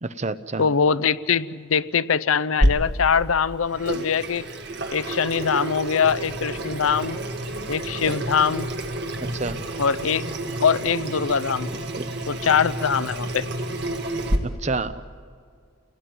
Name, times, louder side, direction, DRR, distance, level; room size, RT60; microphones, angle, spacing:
voice 1, 0.0-0.7 9.2-9.6 11.7-12.1 14.4-15.0, right 3 dB, 35° right, 13 dB, 0.8 m, -29 dB
voice 2, 0.6-4.5 4.9-7.2 7.7-8.7 9.8-10.2 10.6-11.7 12.3-13.5, left 6 dB, 80° left, 15 dB, 0.6 m, -22 dB
Water tap faucet / Sink (filling or washing), 2.6-14.4, right 1 dB, 50° right, 1.9 m, -29 dB
28.5 x 18.5 x 9.4 m, 2.1 s
head